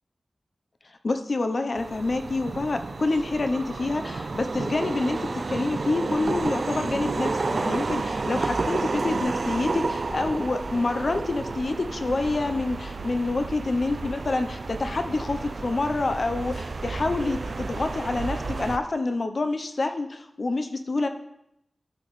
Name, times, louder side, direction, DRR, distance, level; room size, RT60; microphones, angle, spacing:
voice 1, 1.0-21.1, left 2 dB, 55° left, 7 dB, 0.7 m, -27 dB
sound 1, 1.8-18.8, right 3 dB, 60° right, 0.4 m, -31 dB
12.5 x 5.9 x 3.2 m, 0.80 s
wide cardioid pair, 100°, 0 cm